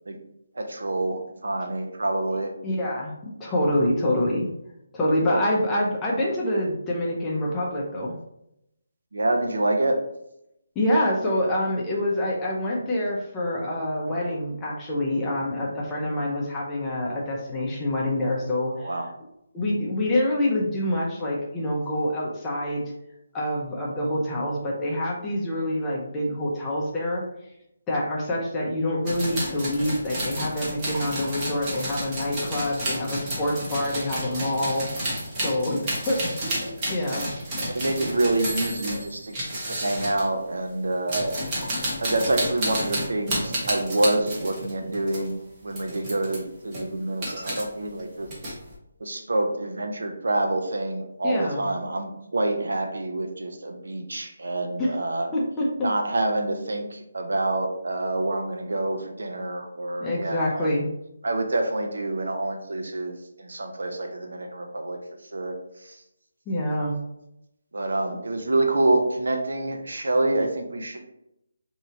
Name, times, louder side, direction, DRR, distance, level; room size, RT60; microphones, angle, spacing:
voice 1, 0.5-2.5 5.3-5.4 9.1-10.0 18.8-19.1 37.7-41.4 42.0-48.3 49.0-55.3 55.8-60.7 61.2-65.0 65.3-66.0 67.7-71.0, right 2 dB, 85° right, 5 dB, 0.7 m, -27 dB
voice 2, 2.6-4.5 4.9-8.1 10.8-18.9 19.5-22.9 23.3-27.2 27.9-34.9 35.4-37.3 51.2-51.7 54.8-54.9 55.3-55.9 60.0-60.9 66.5-67.0, left 1 dB, 10° left, -4 dB, 0.6 m, -26 dB
sound 1, 29.1-40.3 40.9-45.3 45.7-46.4 46.7-47.6 48.0-48.7, right 1 dB, 20° right, 1.0 m, -31 dB
4.5 x 2.8 x 2.8 m, 0.82 s
hypercardioid pair, 170°, 0 cm